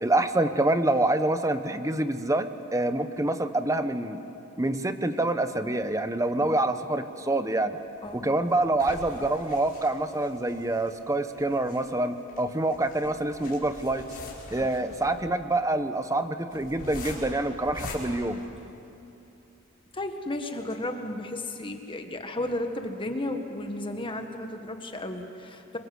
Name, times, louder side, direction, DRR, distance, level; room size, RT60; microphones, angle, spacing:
voice 1, 0.0-4.2 4.6-7.8 8.1-14.1 14.5-18.4, right 2 dB, 15° right, 9 dB, 1.0 m, -26 dB
sound 1, 7.8-19.2 19.7-19.8 20.1-20.2 20.6-20.7, left 2 dB, 40° left, 6.0 m, -44 dB
voice 2, 19.9-25.8, left 1 dB, 25° left, 5 dB, 1.7 m, -34 dB
30.0 x 24.5 x 8.0 m, 2.8 s
head